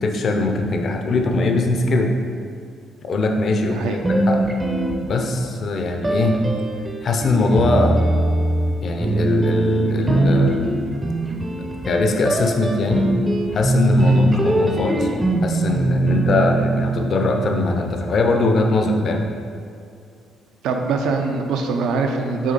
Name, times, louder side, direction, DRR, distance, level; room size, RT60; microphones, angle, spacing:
voice 1, 0.0-2.1 3.1-4.4 5.0-6.4 7.0-8.0 8.8-10.7 11.9-13.1 13.5-19.3, left 2 dB, 45° left, 3 dB, 0.6 m, -21 dB
voice 2, 3.7-4.0 14.0-14.2 20.6-22.5, right 4 dB, 80° right, 3 dB, 0.6 m, -23 dB
sound 1, 4.0-5.5 6.0-18.3, right 2 dB, 15° right, 0.6 m, -21 dB
6.4 x 3.7 x 4.1 m, 2.3 s
cardioid pair, 125°, 0 cm